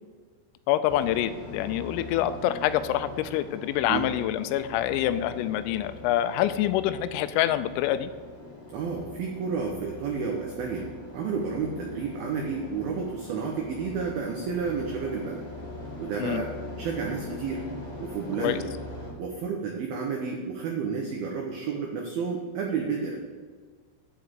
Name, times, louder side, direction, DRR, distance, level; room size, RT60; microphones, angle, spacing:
voice 1, 0.7-8.1 16.2-16.4 18.4-18.6, left 12 dB, 90° left, 13 dB, 3.2 m, -26 dB
sound 1, 0.9-19.1, left 2 dB, 15° left, 2.3 m, -42 dB
voice 2, 8.7-15.4 16.0-16.5 16.8-17.6 18.0-18.7 19.2-23.2, right 5 dB, 90° right, 1 dB, 2.1 m, -31 dB
9.6 x 5.0 x 7.9 m, 1.5 s
omnidirectional pair, 5.7 m